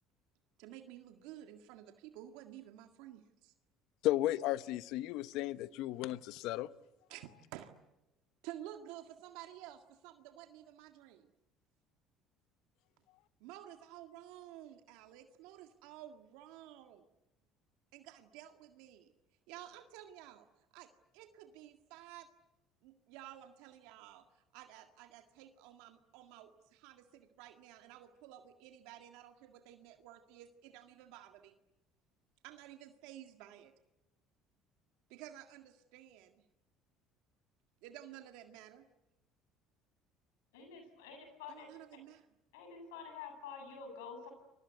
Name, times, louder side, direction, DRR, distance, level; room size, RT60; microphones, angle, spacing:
voice 1, 0.6-3.5 7.1-7.8 8.4-11.3 13.4-17.0 17.9-19.1 19.5-20.5 20.7-22.3 22.8-31.6 32.4-33.7 35.1-36.4 37.8-38.9 41.5-42.3, right 12 dB, 80° right, 1.8 m, -52 dB
voice 2, 4.0-6.7, left 15 dB, 70° left, 1.0 m, -34 dB
voice 3, 40.5-41.7 42.5-44.3, left 5 dB, 85° left, 7.9 m, -48 dB
29.5 x 23.0 x 8.2 m
supercardioid pair, 80°, 0 cm